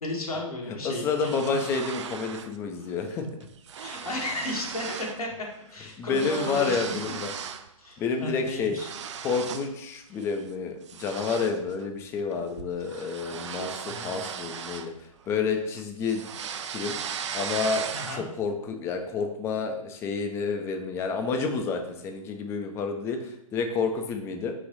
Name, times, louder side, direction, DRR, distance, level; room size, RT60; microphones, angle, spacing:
voice 1, 0.0-1.5 3.7-6.8 7.8-8.9 13.9-14.2 17.9-18.2, left 1 dB, 85° left, -1 dB, 1.4 m, -34 dB
voice 2, 0.8-3.3 6.0-7.3 8.0-8.8 9.2-14.9 15.3-16.2 16.7-17.0 17.3-24.5, left 5 dB, 15° left, 5 dB, 0.4 m, -29 dB
sound 1, 0.9-2.6 2.9-3.2 3.4-5.2 5.5-7.7 8.1-9.8 10.2-10.4 10.9-15.4 15.7-18.4, right 7 dB, 55° right, 0.4 m, -37 dB
5.0 x 2.5 x 3.9 m, 0.78 s
figure-of-eight pair, 125°, 18 cm